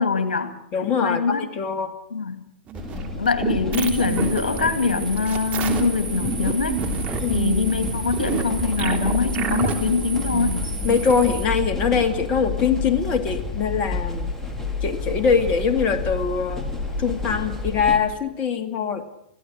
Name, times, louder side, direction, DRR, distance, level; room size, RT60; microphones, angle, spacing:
voice 1, 0.0-0.6 0.8-1.5 2.1-2.4 3.2-6.8 7.3-10.7, left 5 dB, 80° left, 10 dB, 2.3 m, -23 dB
voice 2, 0.7-1.9 7.2-7.3 10.8-14.3 14.8-16.6 17.0-19.0, left 6 dB, 30° left, 8 dB, 2.2 m, -22 dB
sound 1, 2.7-18.0, left 3 dB, 10° left, 4.4 m, -30 dB
sound 2, 2.7-11.3, right 6 dB, 30° right, 3.4 m, -29 dB
sound 3, 3.7-11.5, right 4 dB, 80° right, 3.8 m, -36 dB
25.0 x 16.0 x 7.9 m, 0.75 s
hypercardioid pair, 110°, 5 cm